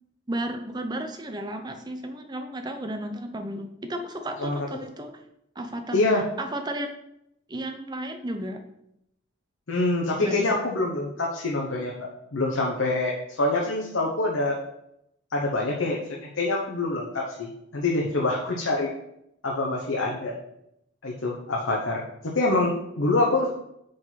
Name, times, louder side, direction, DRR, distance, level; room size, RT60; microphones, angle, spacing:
voice 1, 0.3-5.1 5.6-6.9 7.5-8.6 10.2-10.6, right 1 dB, 20° right, 6 dB, 0.6 m, -33 dB
voice 2, 5.9-6.2 9.7-11.9 12.3-14.6 15.3-16.0 16.4-18.9 19.4-20.3 21.0-22.0 22.3-23.6, left 2 dB, 90° left, -1 dB, 1.0 m, -25 dB
5.8 x 5.1 x 4.1 m, 0.79 s
head